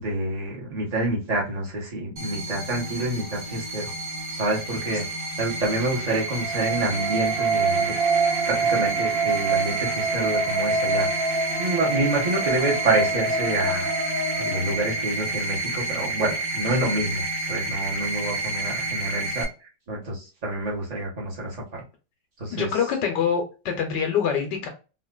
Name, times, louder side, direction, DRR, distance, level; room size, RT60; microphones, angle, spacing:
voice 1, 0.0-3.9 4.3-5.1 5.4-7.9 8.4-11.1 11.6-13.9 14.4-19.5 19.9-21.8 22.4-22.7, right 2 dB, 30° right, -2 dB, 0.8 m, -27 dB
sound 1, 2.2-19.4, right 2 dB, 70° right, 0.4 m, -30 dB
sound 2, 6.2-15.4, right 4 dB, 85° right, 1.4 m, -26 dB
voice 2, 22.5-24.7, left 7 dB, 70° left, 4 dB, 1.3 m, -25 dB
3.7 x 2.4 x 2.2 m, 0.32 s
omnidirectional pair, 2.0 m